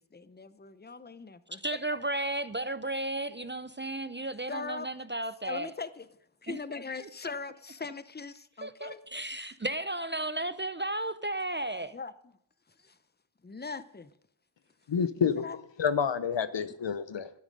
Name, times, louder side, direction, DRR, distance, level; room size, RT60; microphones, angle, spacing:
voice 1, 0.0-1.6 4.5-4.9 5.5-6.1 6.4-9.0 11.9-12.1 12.8-12.9 13.4-14.1 15.2-15.6, left 4 dB, 20° left, 0.7 m, -40 dB
voice 2, 1.6-5.7 6.5-6.6 7.0-7.1 8.6-12.0, right 2 dB, 25° right, 0.5 m, -34 dB
voice 3, 14.9-15.5 15.8-17.3, left 6 dB, 60° left, 0.9 m, -28 dB
13.0 x 9.6 x 5.3 m
wide cardioid pair, 105°, 49 cm